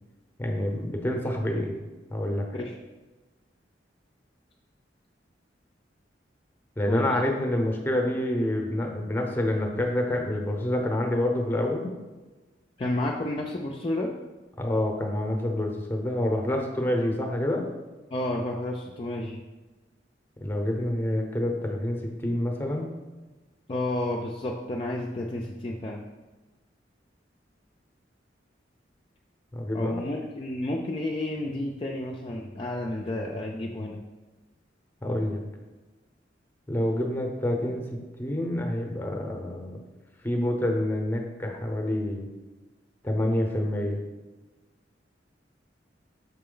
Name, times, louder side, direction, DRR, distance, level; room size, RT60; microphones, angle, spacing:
voice 1, 0.4-1.7 2.1-2.5 6.8-11.9 14.6-17.6 20.4-22.9 29.5-29.9 35.0-35.4 36.7-39.8 40.2-42.3 43.0-44.0, left 1 dB, 10° left, 2 dB, 0.8 m, -27 dB
voice 2, 12.8-14.1 18.1-19.4 23.7-26.0 29.7-34.1, left 1 dB, 30° left, -1 dB, 0.4 m, -31 dB
6.0 x 4.2 x 3.8 m, 1.2 s
head